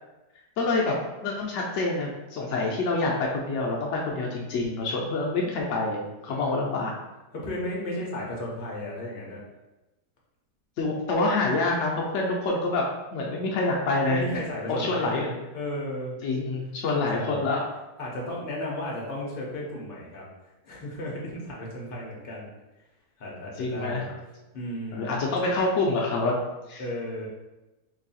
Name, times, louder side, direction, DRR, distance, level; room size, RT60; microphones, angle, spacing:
voice 1, 0.6-1.0 1.2-7.0 10.8-12.9 13.1-14.2 14.7-15.3 16.2-17.6 23.6-24.0 24.9-26.4 26.7-26.8, left 3 dB, 85° left, -1 dB, 0.6 m, -26 dB
voice 2, 6.3-6.8 7.3-9.4 14.1-16.2 16.9-17.5 18.0-20.2 20.6-22.5 23.2-24.1 24.5-25.2 26.8-27.3, left 1 dB, 40° left, -3 dB, 0.8 m, -34 dB
3.1 x 2.6 x 4.0 m, 1.0 s
omnidirectional pair, 1.8 m